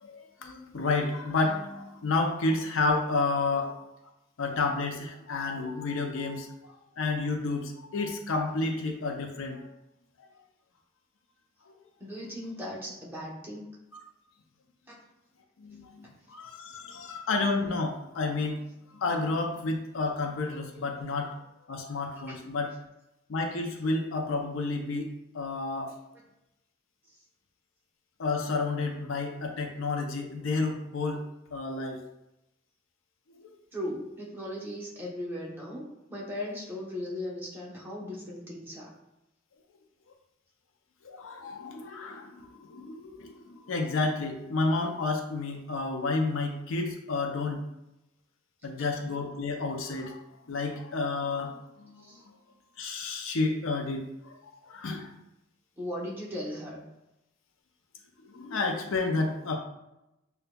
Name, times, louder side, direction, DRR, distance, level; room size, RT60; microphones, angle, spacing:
voice 1, 0.0-3.7 4.4-9.7 13.9-14.0 15.6-18.6 18.9-21.4 21.7-22.7 23.3-25.9 28.2-31.2 31.5-32.0 33.4-33.5 41.0-47.6 48.6-50.2 50.5-52.1 52.8-54.4 54.7-55.1 58.2-59.6, left 3 dB, 75° left, 4 dB, 0.5 m, -31 dB
voice 2, 12.0-13.8 22.3-22.4 33.7-38.9 52.0-52.2 55.8-56.8, left 1 dB, 10° right, -5 dB, 0.9 m, -37 dB
6.6 x 2.3 x 2.2 m, 0.90 s
head